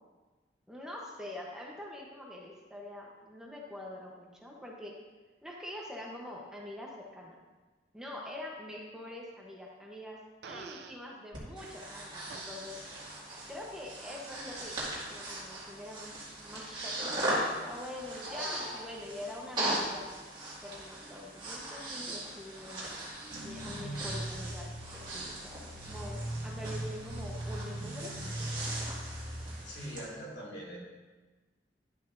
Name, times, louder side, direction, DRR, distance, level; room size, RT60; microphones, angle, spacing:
voice 1, 0.7-4.9 5.4-7.4 7.9-10.2 10.5-12.8 13.5-14.8 15.1-20.0 20.6-22.9 23.4-25.6 25.9-28.1, left 1 dB, 5° right, -2 dB, 1.0 m, -45 dB
Fart, 10.4-11.0 12.3-12.5, right 5 dB, 70° right, 0.5 m, -46 dB
Breathing, 11.3-30.0, right 1 dB, 25° right, 2.1 m, -39 dB
sound 1, 23.3-29.5, right 1 dB, 45° left, 2.5 m, -40 dB
voice 2, 29.5-30.8, equal, 90° left, -5 dB, 2.5 m, -43 dB
11.0 x 7.5 x 2.6 m, 1.3 s
head